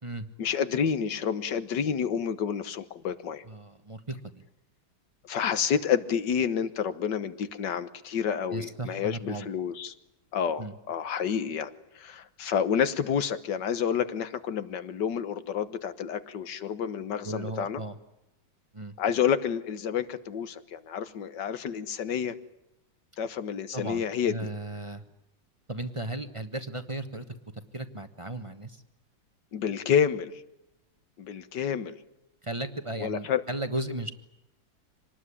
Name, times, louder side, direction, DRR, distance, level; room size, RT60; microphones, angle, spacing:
voice 1, 0.4-3.4 5.2-9.9 10.3-17.8 19.0-22.4 23.2-24.5 29.5-30.3 31.2-32.0 33.0-33.4, left 7 dB, 65° left, 13 dB, 1.8 m, -29 dB
voice 2, 3.5-4.4 8.5-9.5 10.6-10.7 17.2-18.0 18.7-18.9 23.7-25.0 25.7-27.2 27.7-28.8 32.4-34.1, right 1 dB, 20° right, 8 dB, 1.0 m, -35 dB
26.0 x 19.5 x 10.0 m, 0.88 s
omnidirectional pair, 2.1 m